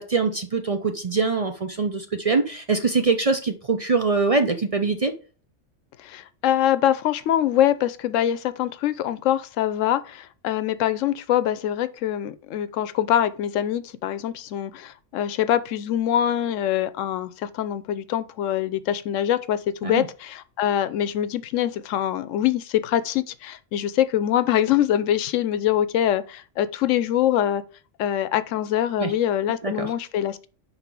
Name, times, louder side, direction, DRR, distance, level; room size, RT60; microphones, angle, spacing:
voice 1, 0.0-5.1 19.8-20.1 29.0-29.1 29.6-29.9, right 4 dB, 40° right, 0.5 m, -23 dB
voice 2, 6.0-27.6 28.0-30.5, left 11 dB, 85° left, 0.9 m, -24 dB
5.4 x 3.9 x 5.9 m
omnidirectional pair, 1.3 m